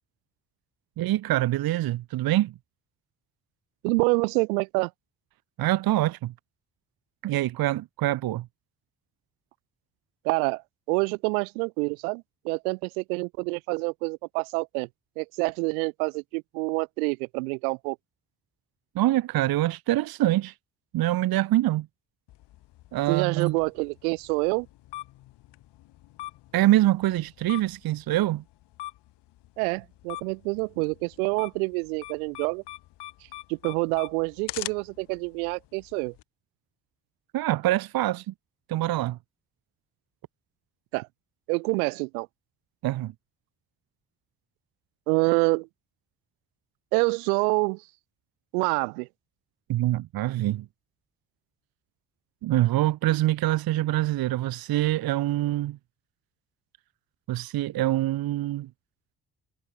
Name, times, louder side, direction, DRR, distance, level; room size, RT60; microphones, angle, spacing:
voice 1, 1.0-2.5 5.6-6.3 7.2-8.5 18.9-20.5 20.9-21.9 22.9-23.6 26.5-28.4 37.3-38.3 38.7-39.2 42.8-43.1 49.7-50.7 52.4-55.8 57.3-58.7, right 15 dB, 55° right, 0.7 m, -25 dB
voice 2, 3.8-4.9 10.2-10.6 10.9-14.9 15.2-18.0 23.1-24.7 29.6-32.6 33.5-36.1 40.9-41.1 41.5-42.3 45.1-45.7 46.9-47.8 48.5-49.1, right 31 dB, 85° right, 1.3 m, -27 dB
sound 1, 22.3-36.2, left 16 dB, 70° left, 2.1 m, -44 dB
hypercardioid pair, 40°, 43 cm